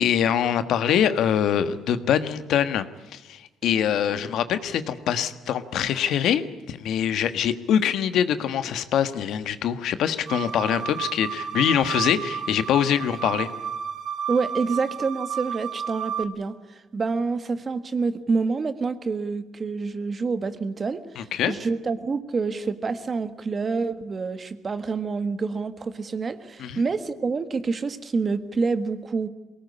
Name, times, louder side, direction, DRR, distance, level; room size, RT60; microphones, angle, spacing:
voice 1, 0.0-2.8 3.1-13.5 21.1-21.5 26.6-26.8, left 9 dB, 75° left, 11 dB, 1.5 m, -24 dB
sound 1, 10.3-16.2, right 8 dB, 60° right, 1.8 m, -32 dB
voice 2, 14.3-21.0 21.5-29.3, right 4 dB, 35° right, 11 dB, 1.6 m, -27 dB
22.5 x 18.5 x 9.8 m, 1.1 s
cardioid pair, 105°, 0 cm